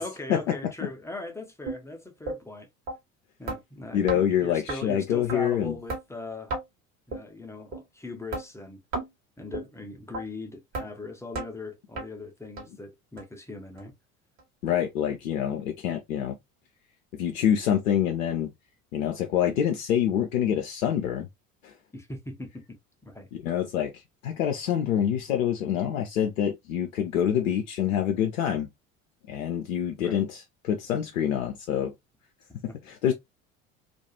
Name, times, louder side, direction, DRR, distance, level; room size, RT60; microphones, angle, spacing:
voice 1, 0.0-2.7 3.4-6.5 7.1-8.8 9.4-13.9 21.9-23.3 30.0-30.2 32.7-32.8, left 2 dB, 5° left, 0.6 m, -40 dB
sound 1, 1.7-1.8 2.3-2.4 2.9-3.0 3.5-3.6 4.1-4.2 4.7-4.8 5.3-5.4 5.9-6.0 6.5-6.6 7.1-7.2 7.7-7.8 8.3-8.5 8.9-9.1 9.5-9.7 10.1-10.2 10.7-10.9 11.4-11.5 12.0-12.1 12.6-12.7 13.2-13.3 13.8-13.9 14.4-14.5, right 2 dB, 45° right, 1.1 m, -33 dB
voice 2, 3.9-5.8 14.6-16.4 17.1-18.5 18.9-21.3 21.6-21.7 23.3-28.7 29.3-31.9 32.8-33.1, left 9 dB, 70° left, 0.5 m, -26 dB
2.4 x 2.3 x 2.7 m
figure-of-eight pair, 65°, 40 cm